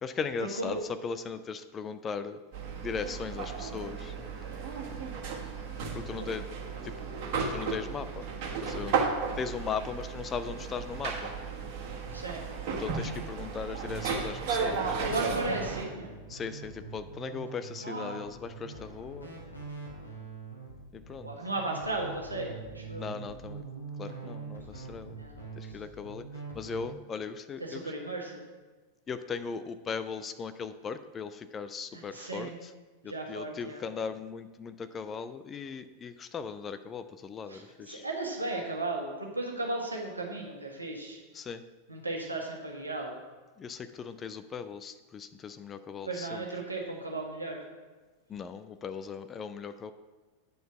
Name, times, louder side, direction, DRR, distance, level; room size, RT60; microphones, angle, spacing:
voice 1, 0.0-2.4 2.8-4.2 5.9-6.5 6.8-7.0 7.5-8.3 8.6-9.1 9.4-11.3 12.8-15.0 16.3-19.3 20.9-21.3 23.0-23.6 24.0-25.2 25.6-26.3 26.5-27.9 29.1-32.7 33.0-38.1 41.3-41.6 43.6-46.5 48.3-49.9, left 6 dB, 25° left, 11 dB, 0.4 m, -38 dB
sound 1, 2.5-15.8, right 5 dB, 45° right, 1.6 m, -34 dB
voice 2, 12.1-12.5 15.1-16.1 17.8-18.2 21.2-23.1 25.2-25.4 27.6-28.4 31.9-32.5 33.0-33.8 37.5-41.2 41.9-43.2 46.1-47.6, right 2 dB, 85° right, -1 dB, 1.6 m, -35 dB
sound 2, 13.8-27.0, right 4 dB, 85° left, 1.7 m, -44 dB
9.1 x 4.5 x 5.7 m, 1.3 s
figure-of-eight pair, 90°, 0 cm